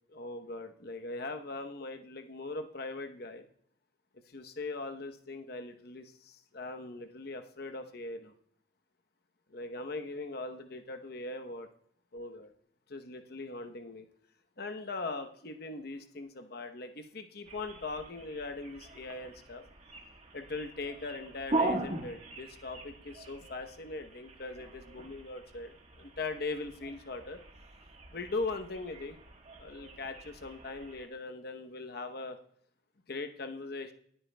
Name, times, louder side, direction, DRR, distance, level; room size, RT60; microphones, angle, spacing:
voice 1, 0.1-3.4 4.3-8.3 9.5-11.7 12.1-12.5 12.9-14.1 14.6-19.6 20.3-27.4 28.1-29.2 29.6-32.4 33.1-33.9, left 3 dB, 55° left, 6 dB, 0.9 m, -40 dB
sound 1, 17.4-31.1, right 2 dB, 35° right, 1.3 m, -41 dB
19.0 x 9.0 x 2.3 m, 0.66 s
head